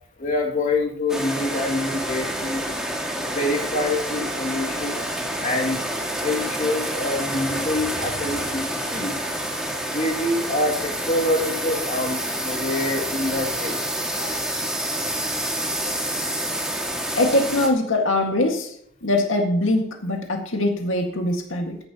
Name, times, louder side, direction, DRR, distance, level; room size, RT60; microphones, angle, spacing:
voice 1, 0.2-2.6 3.2-5.1 5.4-5.8 6.2-8.6 8.9-9.1 9.9-13.8, left 2 dB, 40° left, 1 dB, 2.5 m, -26 dB
sound 1, 1.1-17.7, right 1 dB, 5° right, 2.0 m, -28 dB
voice 2, 14.2-14.5 17.2-18.7 19.0-21.8, left 1 dB, 90° left, 3 dB, 1.9 m, -22 dB
14.0 x 10.5 x 3.0 m, 0.65 s
head